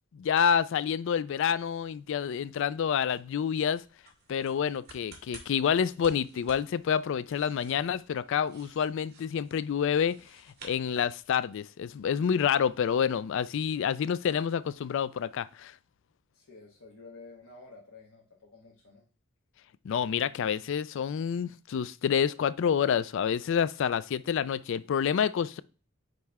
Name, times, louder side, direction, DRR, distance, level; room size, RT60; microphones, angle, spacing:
voice 1, 0.1-3.8 4.3-10.2 10.6-15.7 19.8-25.6, left 7 dB, 65° left, 0.3 m, -28 dB
sound 1, 0.9-11.5, right 3 dB, 50° right, 2.1 m, -56 dB
voice 2, 16.3-19.0, left 3 dB, 80° left, 1.3 m, -51 dB
9.2 x 3.2 x 3.5 m
head